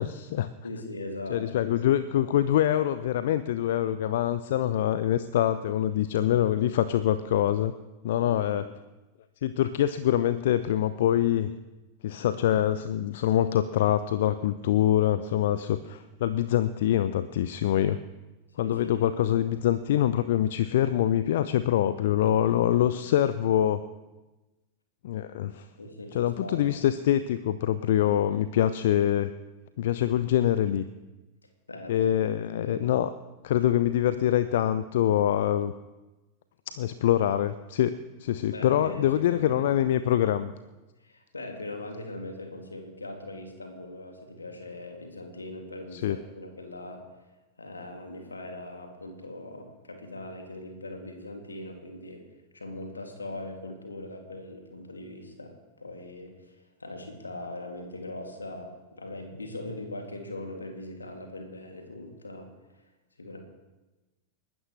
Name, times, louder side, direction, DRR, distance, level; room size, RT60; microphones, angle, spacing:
voice 1, 0.0-0.5 1.3-7.7 8.0-8.7 9.4-11.5 12.0-18.0 18.6-23.8 25.0-25.7 26.1-29.3 29.8-30.8 31.9-33.1 33.4-35.7 36.7-37.9 38.2-40.5 45.9-46.2, left 11 dB, 55° left, 14 dB, 0.5 m, -25 dB
voice 2, 0.6-1.7 6.2-6.3 8.1-8.6 18.6-19.0 19.3-19.5 25.8-26.7 31.7-32.9 38.5-39.5 41.0-47.1 47.6-52.2 52.5-62.5 63.2-63.4, left 2 dB, 80° left, 3 dB, 2.5 m, -40 dB
29.5 x 12.5 x 3.2 m, 1.1 s
figure-of-eight pair, 90°, 0 cm